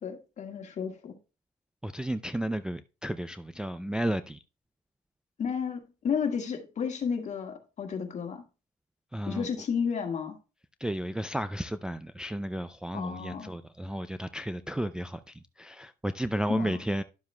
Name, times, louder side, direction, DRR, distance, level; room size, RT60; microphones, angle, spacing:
voice 1, 0.0-1.2 5.4-8.4 9.3-10.4 12.9-13.5 16.5-16.8, left 6 dB, 45° left, 1.7 m, -32 dB
voice 2, 1.8-4.4 9.1-9.5 10.8-17.0, right 1 dB, 5° right, 0.3 m, -33 dB
11.5 x 7.2 x 2.2 m
cardioid pair, 110°, 17 cm